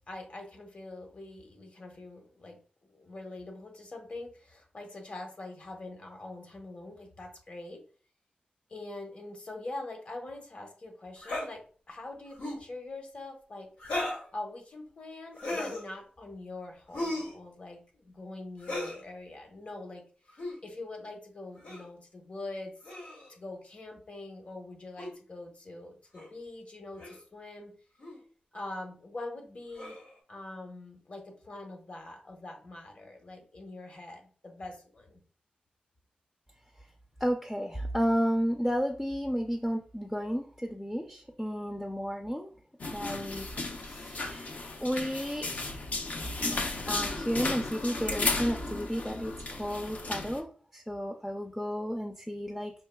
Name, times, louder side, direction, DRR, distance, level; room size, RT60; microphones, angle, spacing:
voice 1, 0.1-2.6 2.9-7.8 8.7-11.6 11.9-13.7 14.3-20.0 20.6-22.7 23.3-27.7 28.5-30.0 30.3-35.2, left 2 dB, 45° left, 3 dB, 1.0 m, -43 dB
sound 1, 11.2-11.5 12.3-12.7 13.8-14.3 15.4-15.8 16.9-17.4 18.6-19.0 20.3-20.6 21.6-21.9 22.8-23.3 25.0-25.1 26.2-26.3 27.0-27.2 28.0-28.2 29.7-30.1, left 1 dB, 80° left, 1.4 m, -36 dB
voice 2, 37.2-42.5 42.9-44.5 44.8-45.5 46.4-52.7, equal, 5° left, 3 dB, 0.4 m, -32 dB
sound 2, 42.8-50.4, left 2 dB, 60° left, 0.6 m, -34 dB
5.4 x 3.1 x 2.2 m, 0.43 s
wide cardioid pair, 110°, 3 cm